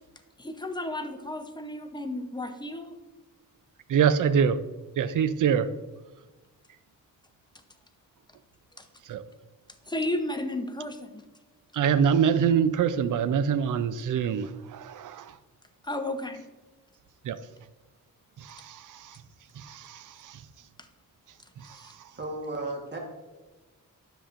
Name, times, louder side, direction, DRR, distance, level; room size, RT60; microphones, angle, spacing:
voice 1, 0.4-3.0 8.8-8.9 9.9-11.2 15.8-16.4 20.8-20.9 21.7-21.9, left 1 dB, 15° left, 6 dB, 0.6 m, -33 dB
voice 2, 3.9-4.6 5.0-5.7 9.0-9.2 11.7-15.4 17.2-17.4 18.4-19.2 19.6-20.4 21.6-22.1, right 7 dB, 65° right, 13 dB, 0.5 m, -25 dB
voice 3, 22.1-23.0, right 2 dB, 30° right, 1 dB, 1.3 m, -34 dB
10.0 x 7.0 x 2.5 m, 1.2 s
wide cardioid pair, 125°, 34 cm